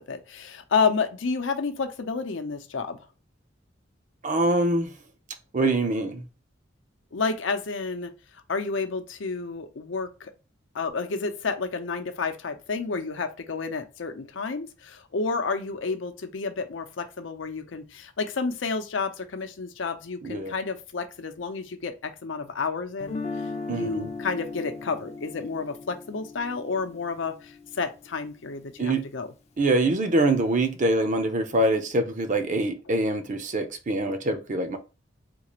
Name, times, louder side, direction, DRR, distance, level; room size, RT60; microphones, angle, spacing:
voice 1, 0.0-3.0 7.1-8.1 8.5-10.3 10.7-23.2 23.7-29.3, left 4 dB, 80° left, 0.6 m, -30 dB
voice 2, 4.2-4.9 5.5-6.2 20.2-20.5 23.7-24.1 28.8-29.1 29.6-34.8, right 2 dB, 40° right, 0.6 m, -24 dB
Guitar, 23.0-29.0, left 4 dB, 35° left, 0.5 m, -38 dB
3.7 x 2.4 x 3.0 m
head